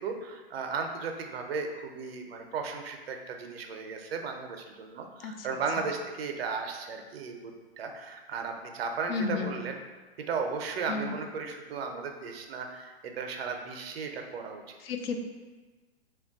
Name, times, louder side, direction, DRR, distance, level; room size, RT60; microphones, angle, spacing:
voice 1, 0.0-9.8 10.2-14.6, right 5 dB, 70° right, 4 dB, 0.5 m, -35 dB
voice 2, 9.1-9.5 10.9-11.2 14.8-15.2, left 5 dB, 65° left, 4 dB, 0.5 m, -32 dB
2.2 x 2.2 x 3.8 m, 1.3 s
hypercardioid pair, 135°, 31 cm